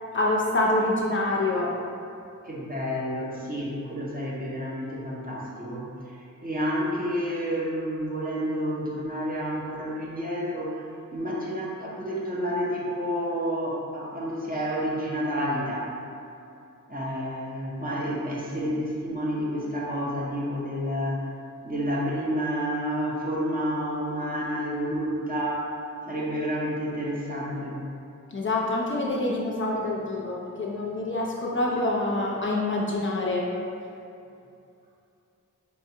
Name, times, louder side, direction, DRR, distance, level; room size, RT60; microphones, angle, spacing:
voice 1, 0.1-1.7 28.3-33.5, left 2 dB, 40° left, -3 dB, 0.4 m, -26 dB
voice 2, 2.4-15.9 16.9-21.3 21.6-25.7 26.1-27.8, equal, 30° right, -5 dB, 0.6 m, -30 dB
4.2 x 2.3 x 2.7 m, 2.6 s
wide cardioid pair, 105°, 32 cm